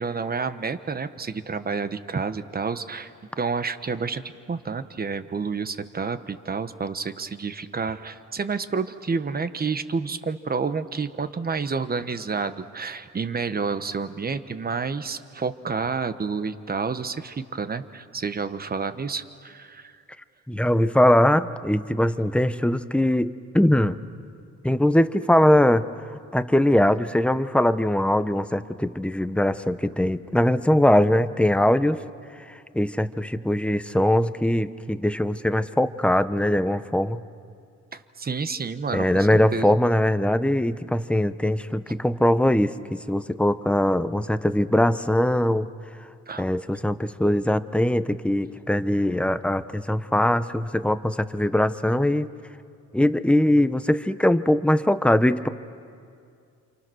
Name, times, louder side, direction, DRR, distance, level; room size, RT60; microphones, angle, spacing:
voice 1, 0.0-19.9 37.9-39.7 46.3-46.5, right 5 dB, 30° right, 11 dB, 1.2 m, -29 dB
voice 2, 20.5-24.0 24.6-25.8 26.1-32.0 32.7-37.2 38.9-45.7 46.4-52.3 52.9-55.5, left 1 dB, 5° left, 12 dB, 0.9 m, -21 dB
29.0 x 27.0 x 6.4 m, 2.3 s
cardioid pair, 90°, 30 cm